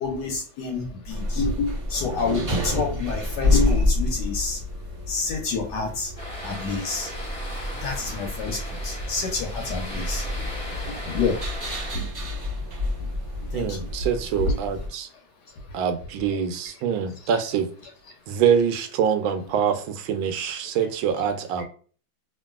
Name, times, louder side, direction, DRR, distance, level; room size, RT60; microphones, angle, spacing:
voice 1, 0.0-4.6 5.1-6.1 6.4-7.1 7.8-8.6 8.8-10.2 11.1-11.3 11.9-12.0 13.5-13.7 14.4-14.5, left 4 dB, 70° left, 1.1 m, -27 dB
sound 1, 1.1-14.9, left 2 dB, 45° right, 0.4 m, -29 dB
sound 2, 6.2-12.0, equal, 25° left, 0.9 m, -38 dB
voice 2, 13.5-15.1 15.7-17.7 18.3-21.6, right 7 dB, 85° right, 1.4 m, -25 dB
3.0 x 2.5 x 2.3 m
omnidirectional pair, 2.1 m